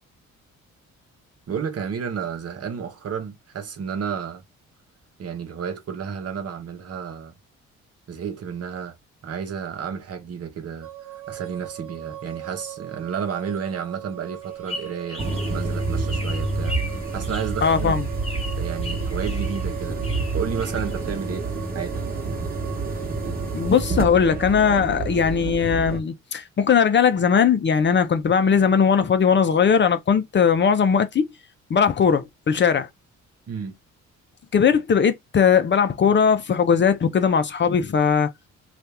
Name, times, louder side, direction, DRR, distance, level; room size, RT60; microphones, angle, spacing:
voice 1, 1.5-4.4 5.2-7.3 8.1-8.9 9.2-15.2 15.5-17.9 18.6-20.0 20.3-22.0 33.5-33.8, right 7 dB, 55° right, 1.0 m, -31 dB
sound 1, 10.8-24.8, right 13 dB, 85° right, 0.8 m, -39 dB
sound 2, 14.4-21.5, left 1 dB, 20° left, 1.2 m, -39 dB
sound 3, 15.2-26.0, right 3 dB, 30° right, 1.2 m, -28 dB
voice 2, 17.6-18.1 23.5-31.3 31.7-32.9 34.5-38.3, left 6 dB, 40° left, 0.6 m, -19 dB
2.8 x 2.5 x 3.4 m
cardioid pair, 90°, 30 cm